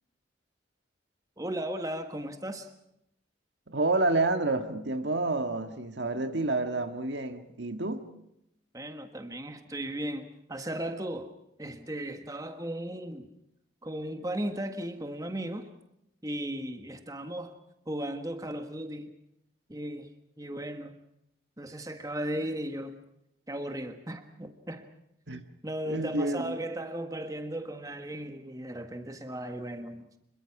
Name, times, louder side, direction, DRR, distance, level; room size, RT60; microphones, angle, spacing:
voice 1, 1.4-2.7 8.7-11.3 11.6-13.3 13.8-15.7 16.2-17.5 17.9-19.1 19.7-20.1 20.4-21.0 21.6-23.0 23.5-24.8 25.6-30.1, right 1 dB, 20° right, 1.5 m, -36 dB
voice 2, 3.7-8.0 25.3-25.4 25.8-26.6, right 2 dB, 65° right, 1.7 m, -29 dB
26.5 x 22.5 x 6.0 m
head